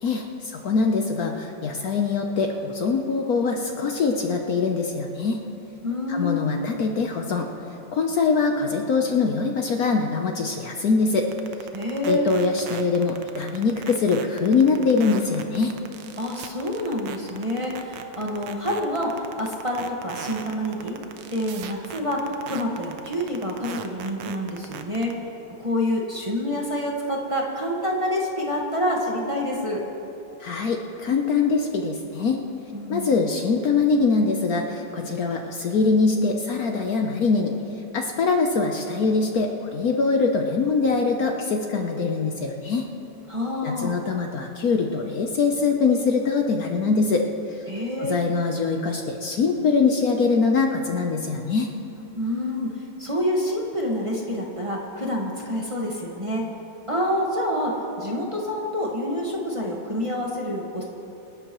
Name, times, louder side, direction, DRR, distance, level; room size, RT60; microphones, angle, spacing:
voice 1, 0.0-5.4 6.1-7.5 7.9-11.3 12.0-15.7 30.4-32.4 32.9-37.5 37.9-42.9 43.6-47.6 48.0-51.7, left 4 dB, 60° left, 3 dB, 1.2 m, -23 dB
voice 2, 5.8-6.4 11.7-12.3 16.2-21.0 21.3-25.1 25.6-29.8 32.7-33.1 43.3-44.0 47.7-48.1 52.2-56.5 56.9-60.8, left 1 dB, 20° right, -3 dB, 1.4 m, -27 dB
sound 1, 11.3-25.1, right 8 dB, 80° right, 1.5 m, -38 dB
26.5 x 11.5 x 3.1 m, 3.0 s
omnidirectional pair, 2.0 m